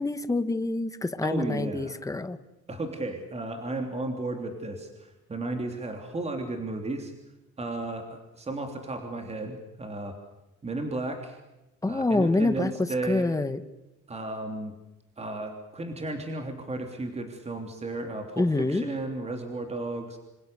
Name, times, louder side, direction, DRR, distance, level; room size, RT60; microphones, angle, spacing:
voice 1, 0.0-2.4 11.8-13.6 18.4-18.9, left 2 dB, 10° left, 11 dB, 1.3 m, -26 dB
voice 2, 1.2-2.0 2.7-7.1 7.6-8.1 8.3-10.1 10.6-11.4 11.9-13.3 14.1-14.7 15.2-20.2, right 2 dB, 20° right, 4 dB, 3.3 m, -34 dB
27.0 x 27.0 x 7.0 m, 0.99 s
cardioid pair, 155°, 31 cm